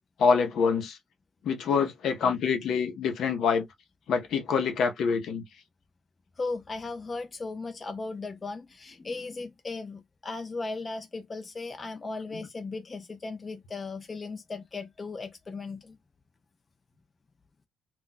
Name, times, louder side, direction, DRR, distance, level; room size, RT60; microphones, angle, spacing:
voice 1, 0.2-1.0 1.4-3.7 4.1-5.4, left 5 dB, 60° left, 0.6 m, -26 dB
voice 2, 6.4-16.0, left 3 dB, 25° left, 0.4 m, -37 dB
2.2 x 2.1 x 3.9 m
cardioid pair, 130°, 0 cm